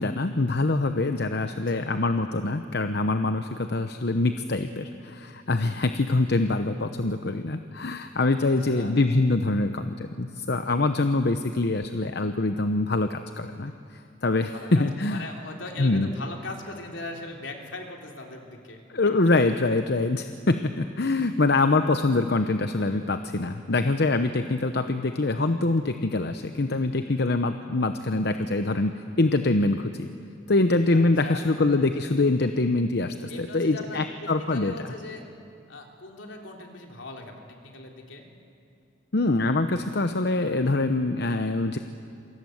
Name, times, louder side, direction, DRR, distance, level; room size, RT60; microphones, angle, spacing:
voice 1, 0.0-13.7 14.2-15.2 15.8-16.1 18.9-30.1 30.5-34.9 39.1-41.8, left 2 dB, 60° left, 8 dB, 0.9 m, -24 dB
voice 2, 1.4-1.9 8.3-8.9 13.7-13.8 14.5-18.8 30.9-31.5 33.3-35.3 35.7-38.3, left 2 dB, 75° left, 2 dB, 3.5 m, -40 dB
28.0 x 24.0 x 7.9 m, 2.4 s
head